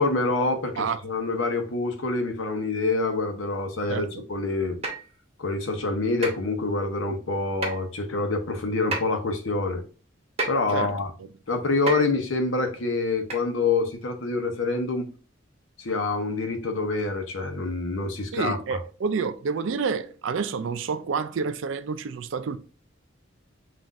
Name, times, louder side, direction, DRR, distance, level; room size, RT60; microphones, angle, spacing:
voice 1, 0.0-4.8 5.4-9.8 10.5-11.1 11.5-15.1 15.8-18.8, left 3 dB, 70° left, 0.8 m, -26 dB
voice 2, 3.9-4.2 10.7-11.3 18.3-22.6, right 5 dB, 65° right, 0.4 m, -29 dB
sound 1, 4.8-5.1 6.2-6.4 7.6-7.9 8.9-9.0 10.4-10.6 11.9-12.1 13.3-13.4 14.0-14.1, right 3 dB, 30° right, 0.9 m, -30 dB
5.8 x 2.5 x 2.5 m
head